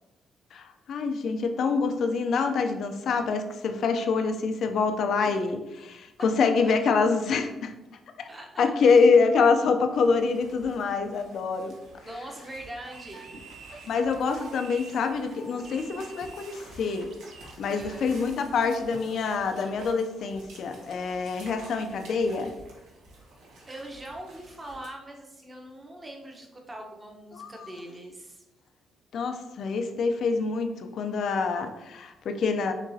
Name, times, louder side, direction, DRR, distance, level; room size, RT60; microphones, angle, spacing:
voice 1, 0.5-7.7 8.6-11.7 13.9-17.1 17.6-22.5 27.3-27.7 29.1-32.7, left 4 dB, 65° left, 6 dB, 0.5 m, -25 dB
voice 2, 6.6-7.2 8.2-9.5 12.0-13.3 17.7-18.1 23.7-28.4, right 1 dB, 20° right, 1 dB, 0.9 m, -42 dB
sound 1, 9.9-24.9, right 1 dB, 90° right, 1.1 m, -50 dB
sound 2, 12.8-17.6, right 4 dB, 60° right, 0.7 m, -48 dB
6.0 x 3.0 x 2.7 m, 1.0 s
cardioid pair, 90°, 0 cm